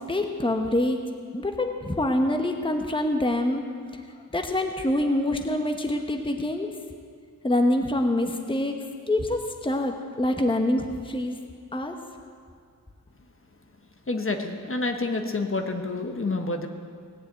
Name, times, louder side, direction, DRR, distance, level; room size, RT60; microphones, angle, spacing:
voice 1, 0.1-1.0 1.3-3.6 4.3-6.7 7.4-8.8 9.1-11.4 11.7-12.0, left 1 dB, 15° left, 4 dB, 1.1 m, -25 dB
voice 2, 14.1-16.7, left 3 dB, 40° left, 4 dB, 1.3 m, -28 dB
18.0 x 7.7 x 9.1 m, 2.1 s
wide cardioid pair, 70°, 33 cm